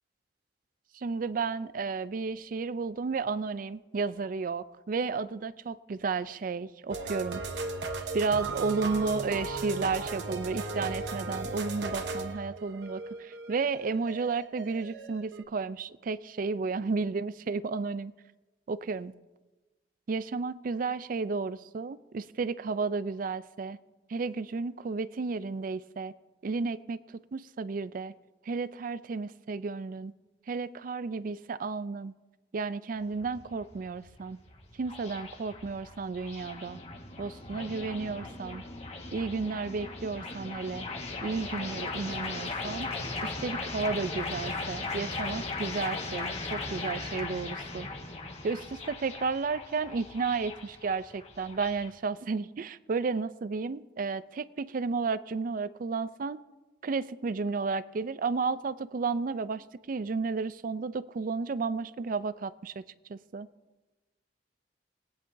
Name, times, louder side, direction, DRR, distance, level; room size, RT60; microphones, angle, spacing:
voice 1, 0.9-7.4 8.1-18.1 18.7-19.1 20.1-23.8 24.1-26.1 26.4-27.0 27.3-28.1 28.5-30.1 30.5-32.1 32.5-34.4 34.8-36.8 37.2-38.6 39.1-40.9 41.2-42.9 43.2-47.9 48.4-56.4 56.8-62.8 63.1-63.5, right 4 dB, 50° right, 16 dB, 0.4 m, -32 dB
sound 1, 6.9-15.4, right 3 dB, 80° right, 1.0 m, -36 dB
sound 2, 32.9-51.9, left 3 dB, 40° left, 1.5 m, -38 dB
19.5 x 10.0 x 2.7 m, 1.1 s
head